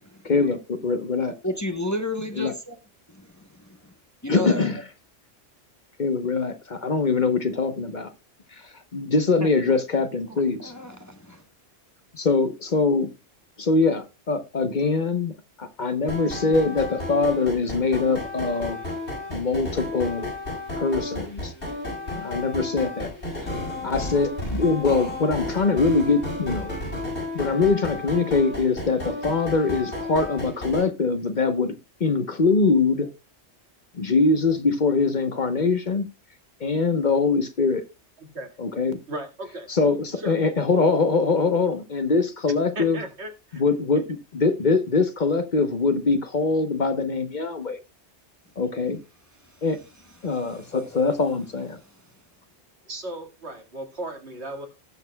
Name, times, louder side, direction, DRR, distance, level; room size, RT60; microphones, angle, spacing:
voice 1, 0.2-1.3 2.2-2.5 4.3-4.9 6.0-8.1 8.6-10.7 12.1-13.1 13.6-15.3 15.6-18.8 19.3-20.3 20.8-21.5 22.1-23.1 23.4-23.5 23.8-26.8 27.3-31.7 32.0-33.1 33.9-36.1 36.6-37.8 38.6-39.0 39.7-43.0 43.5-44.0 44.3-47.8 48.6-49.0 49.6-49.8 50.2-51.8, left 4 dB, 45° left, 1.0 m, -23 dB
voice 2, 1.4-2.8 3.1-3.9 4.2-4.7 9.4-9.5 10.6-11.4 50.2-50.8, left 1 dB, 15° left, 0.9 m, -32 dB
sound 1, 16.1-30.8, left 2 dB, 75° left, 6.4 m, -32 dB
voice 3, 38.2-38.5 39.1-39.7 40.2-40.4 42.8-43.6 52.8-54.7, right 1 dB, 75° right, 2.3 m, -36 dB
19.0 x 6.5 x 2.2 m
omnidirectional pair, 1.1 m